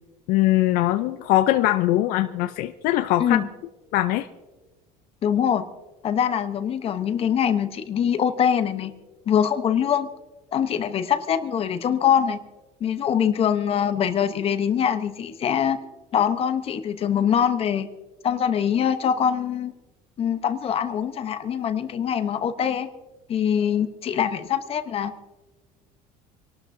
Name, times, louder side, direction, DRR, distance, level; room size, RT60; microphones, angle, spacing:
voice 1, 0.3-3.4 3.9-4.3, left 15 dB, 65° left, 10 dB, 0.6 m, -21 dB
voice 2, 5.2-5.7 6.0-8.9 9.3-10.1 10.5-12.4 12.8-15.8 16.1-17.9 18.2-19.7 20.2-22.9 23.3-25.1, left 8 dB, 40° left, 10 dB, 0.9 m, -23 dB
26.5 x 12.5 x 2.7 m, 1.2 s
cardioid pair, 135°, 16 cm